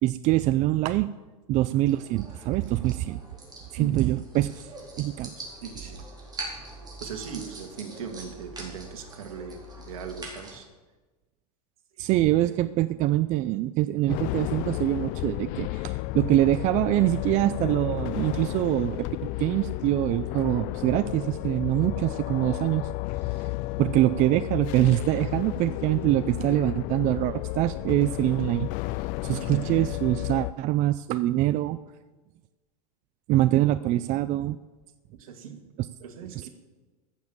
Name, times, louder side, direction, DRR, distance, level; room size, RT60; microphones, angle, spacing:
voice 1, 0.0-1.1 1.5-3.2 3.7-4.7 5.0-5.3 12.0-22.9 23.3-23.5 23.8-28.7 29.2-31.8 33.3-34.6 36.4-36.5, right 15 dB, 40° right, 15 dB, 0.4 m, -24 dB
sound 1, 1.9-10.6, right 2 dB, 20° right, 4.4 m, -43 dB
voice 2, 5.6-6.0 7.0-10.7 12.0-12.1 29.3-29.8 35.2-35.6 36.0-36.5, right 7 dB, 70° right, 7 dB, 1.9 m, -39 dB
sound 2, 14.1-30.5, left 19 dB, 45° left, 0.4 m, -32 dB
14.0 x 7.2 x 7.3 m, 1.2 s
hypercardioid pair, 95°, 19 cm